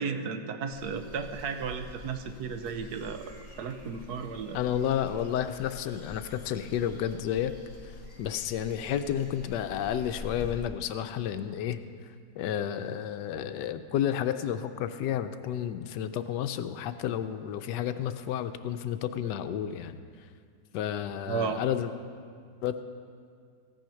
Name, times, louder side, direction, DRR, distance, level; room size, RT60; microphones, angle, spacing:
voice 1, 0.0-4.6 21.3-21.6, right 5 dB, 70° right, 8 dB, 1.3 m, -34 dB
sound 1, 0.7-10.6, left 2 dB, 10° left, 2.2 m, -47 dB
voice 2, 4.5-7.5 8.2-11.8 12.3-20.0 20.7-21.9 22.6-22.8, left 10 dB, 80° left, 10 dB, 1.2 m, -31 dB
15.0 x 9.2 x 5.7 m, 2.2 s
omnidirectional pair, 1.9 m